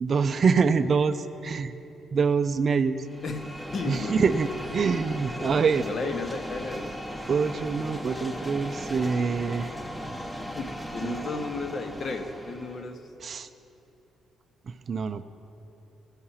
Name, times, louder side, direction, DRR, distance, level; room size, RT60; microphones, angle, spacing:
voice 1, 0.0-1.7 2.1-3.0 3.9-5.8 7.3-9.7 11.0-11.1 13.2-13.5 14.9-15.2, right 5 dB, 45° right, 9 dB, 0.4 m, -25 dB
sound 1, 3.0-12.9, equal, 5° left, 0.8 m, -37 dB
voice 2, 3.2-4.3 5.4-6.9 10.4-13.0, left 3 dB, 50° left, 6 dB, 1.0 m, -34 dB
17.0 x 5.7 x 5.7 m, 2.9 s
cardioid pair, 90°, 0 cm